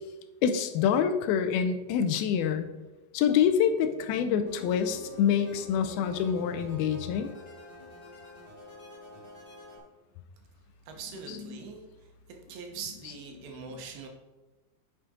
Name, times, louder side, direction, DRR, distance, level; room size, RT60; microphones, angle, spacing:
voice 1, 0.4-2.7 3.1-7.3 11.3-11.6 13.7-13.8, left 8 dB, 85° left, 9 dB, 2.5 m, -26 dB
sound 1, 4.5-9.8, left 2 dB, 10° left, 2.1 m, -48 dB
voice 2, 10.9-11.8 12.3-14.1, right 5 dB, 80° right, 3 dB, 3.0 m, -42 dB
9.1 x 5.9 x 3.7 m, 1.1 s
omnidirectional pair, 4.3 m